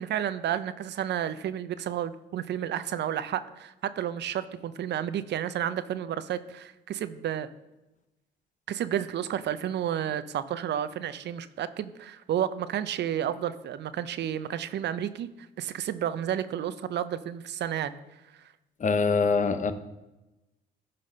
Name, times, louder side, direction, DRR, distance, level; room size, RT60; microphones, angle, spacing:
voice 1, 0.0-7.5 8.7-15.3 15.6-18.0 18.3-18.5, right 10 dB, 60° right, 14 dB, 0.6 m, -31 dB
voice 2, 18.8-19.7, left 4 dB, 40° left, 10 dB, 0.8 m, -24 dB
10.5 x 4.2 x 5.3 m, 1.0 s
supercardioid pair, 65°, 20 cm